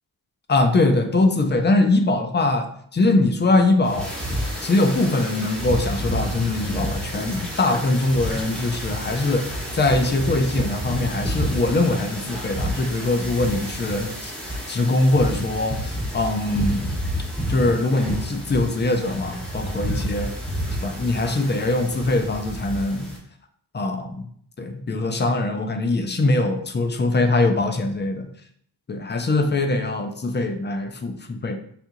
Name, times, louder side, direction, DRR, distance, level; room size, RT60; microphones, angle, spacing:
voice 1, 0.5-4.1 4.6-16.9 17.5-20.3 20.8-23.1 23.7-24.3 24.6-28.3 28.9-31.6, left 2 dB, 25° left, 5 dB, 0.5 m, -22 dB
sound 1, 3.8-23.2, equal, ahead, 1.2 m, -30 dB
4.3 x 2.4 x 2.7 m, 0.64 s
cardioid pair, 65°, 42 cm